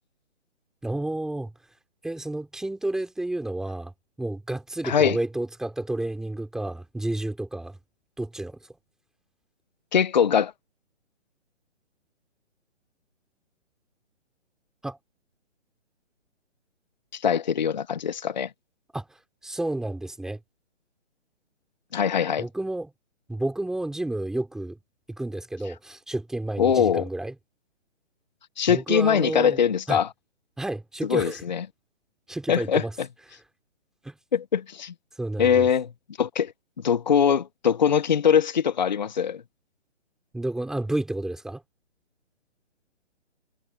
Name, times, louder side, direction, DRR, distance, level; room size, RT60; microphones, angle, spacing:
voice 1, 0.8-1.5 2.0-3.9 4.2-7.8 8.2-8.6 14.8-15.0 18.9-19.1 19.4-20.4 22.4-22.9 23.3-24.8 25.1-27.3 28.7-29.6 29.9-30.0 30.6-31.4 32.3-32.9 34.0-34.2 35.2-35.7 40.3-41.6, right 1 dB, ahead, 3.4 m, -30 dB
voice 2, 4.8-5.2 9.9-10.5 17.1-18.5 21.9-22.5 26.6-27.1 28.6-30.1 31.1-31.6 32.5-32.8 34.3-34.9 35.4-35.9 36.2-36.5 36.8-39.4, left 7 dB, 40° left, 0.7 m, -22 dB
hypercardioid pair, 170°, 36 cm